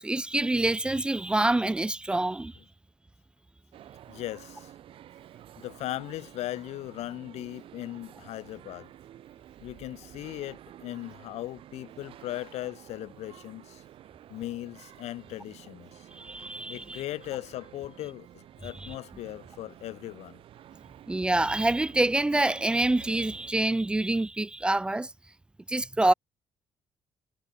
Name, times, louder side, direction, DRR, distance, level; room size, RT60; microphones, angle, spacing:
voice 1, 0.0-2.5 16.2-17.0 21.1-25.1 25.7-26.1, right 2 dB, 10° right, 1.1 m, -26 dB
sound 1, 3.7-23.5, right 11 dB, 55° right, 4.8 m, -50 dB
voice 2, 4.1-4.7 5.6-8.9 9.6-13.8 14.3-16.1 16.7-20.4, left 15 dB, 85° left, 3.8 m, -38 dB
cardioid pair, 175°, 11 cm